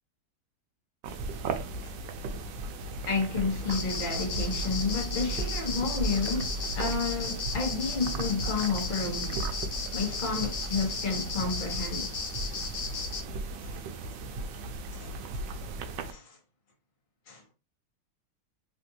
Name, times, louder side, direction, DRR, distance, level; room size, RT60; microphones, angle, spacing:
Stomach gurgling, 1.0-16.1, right 2 dB, 85° right, 1.3 m, -37 dB
voice 1, 3.0-9.4 9.9-12.1 12.9-13.0 13.6-13.8 14.9-15.1 16.1-16.4 17.3-17.4, left 4 dB, 35° left, 1.0 m, -31 dB
sound 1, 3.7-13.2, left 1 dB, 85° left, 0.5 m, -34 dB
3.5 x 2.5 x 2.7 m
omnidirectional pair, 1.9 m